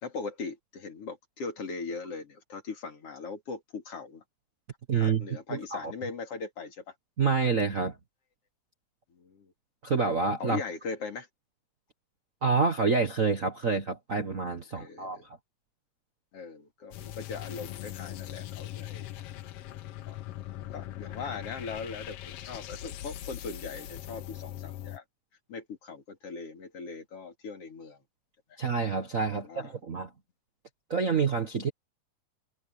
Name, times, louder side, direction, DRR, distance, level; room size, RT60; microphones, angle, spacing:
voice 1, 0.0-4.2 4.9-6.9 9.1-9.5 10.4-11.3 14.7-15.3 16.3-19.1 19.9-20.2 20.7-25.0 25.5-28.0 28.5-28.6 29.3-29.8, left 4 dB, 45° left, 3.5 m, -40 dB
voice 2, 4.9-5.9 7.2-8.0 9.8-10.6 12.4-15.2 28.6-30.1 30.9-31.7, right 5 dB, 90° right, 0.7 m, -28 dB
sound 1, 16.9-25.0, left 13 dB, 80° left, 1.3 m, -41 dB
omnidirectional pair, 3.9 m